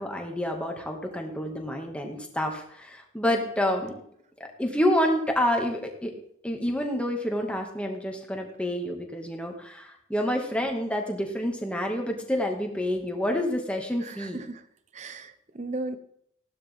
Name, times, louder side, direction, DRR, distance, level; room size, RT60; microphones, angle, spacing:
voice 1, 0.0-3.9 4.4-6.1 6.4-14.4, equal, 5° left, 2 dB, 2.1 m, -28 dB
voice 2, 14.0-14.7 14.9-16.0, right 2 dB, 40° right, 11 dB, 1.0 m, -36 dB
16.0 x 12.0 x 3.7 m, 0.67 s
head